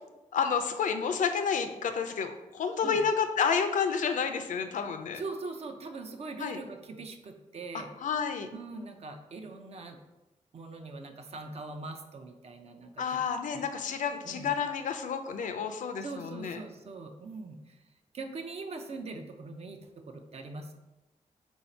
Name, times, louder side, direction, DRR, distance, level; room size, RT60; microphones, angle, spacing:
voice 1, 0.3-5.2 6.4-6.6 8.0-8.5 13.0-16.6, left 6 dB, 80° left, 7 dB, 0.4 m, -30 dB
voice 2, 5.1-7.9 8.5-10.0 10.5-13.2 13.5-13.6 14.2-14.5 16.0-17.8 18.1-20.7, right 3 dB, 50° right, 5 dB, 0.5 m, -42 dB
3.9 x 2.7 x 4.3 m, 1.0 s
cardioid pair, 95°, 13 cm